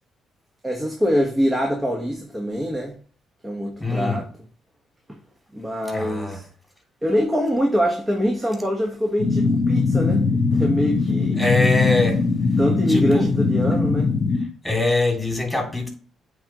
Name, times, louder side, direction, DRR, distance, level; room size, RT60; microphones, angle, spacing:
voice 1, 0.6-2.9 3.4-4.2 5.5-6.4 7.0-11.4 12.6-14.1, equal, 15° right, 1.4 m, -24 dB
voice 2, 3.8-4.2 5.9-6.4 11.4-12.2 12.9-13.3 14.6-15.9, left 2 dB, 5° left, 3.0 m, -23 dB
sound 1, 9.2-14.4, left 4 dB, 60° left, 1.0 m, -20 dB
8.7 x 3.9 x 3.1 m
cardioid pair, 90°, 0 cm